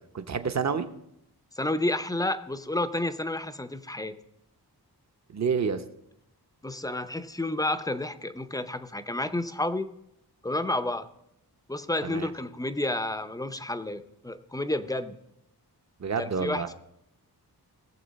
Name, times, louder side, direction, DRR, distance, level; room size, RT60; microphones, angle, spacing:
voice 1, 0.1-0.9 5.3-5.8 12.0-12.3 16.0-16.7, right 6 dB, 40° right, 9 dB, 0.8 m, -28 dB
voice 2, 1.6-4.1 6.6-9.9 10.4-11.1 11.7-15.2 16.2-16.7, left 1 dB, 10° left, 10 dB, 0.5 m, -30 dB
19.0 x 7.1 x 4.1 m, 0.80 s
wide cardioid pair, 130°, 40 cm